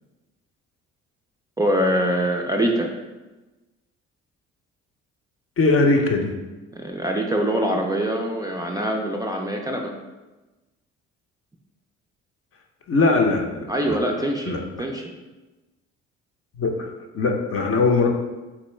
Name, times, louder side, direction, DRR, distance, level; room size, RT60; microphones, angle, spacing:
voice 1, 1.6-2.9 6.7-9.9 13.7-15.1, right 1 dB, 10° right, 0 dB, 0.4 m, -24 dB
voice 2, 5.6-6.3 12.9-14.6 16.5-16.9 17.1-18.1, left 3 dB, 45° left, 3 dB, 0.6 m, -21 dB
3.5 x 2.9 x 3.1 m, 1.1 s
hypercardioid pair, 55°, 33 cm